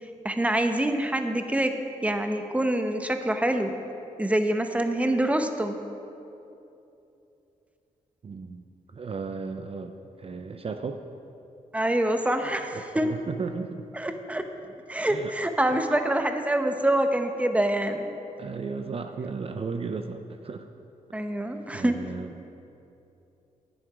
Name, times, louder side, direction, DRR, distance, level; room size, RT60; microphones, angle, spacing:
voice 1, 0.2-3.7 4.2-5.8 11.7-13.1 13.9-14.4 14.9-18.1 21.1-22.0, right 1 dB, 10° right, 6 dB, 0.8 m, -25 dB
voice 2, 8.2-8.6 8.9-11.0 12.7-13.9 15.1-15.3 15.7-15.8 18.4-20.7 21.7-22.4, right 4 dB, 45° right, 6 dB, 0.5 m, -35 dB
9.9 x 9.2 x 4.9 m, 2.8 s
cardioid pair, 70°, 14 cm